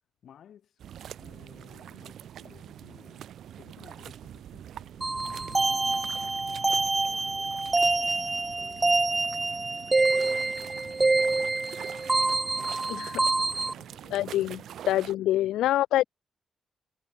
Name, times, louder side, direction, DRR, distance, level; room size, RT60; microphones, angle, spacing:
voice 1, 0.2-0.8 1.1-3.3 3.6-7.6 8.1-9.4 10.0-11.6 12.0-14.6 15.2-15.7, left 9 dB, 70° left, 6.9 m, -55 dB
sound 1, 0.8-15.1, right 10 dB, 80° right, 0.5 m, -44 dB
sound 2, 5.0-13.7, right 3 dB, 25° right, 0.6 m, -26 dB
voice 2, 14.1-14.6 14.9-16.0, left 13 dB, 90° left, 0.3 m, -25 dB
cardioid pair, 65°, 0 cm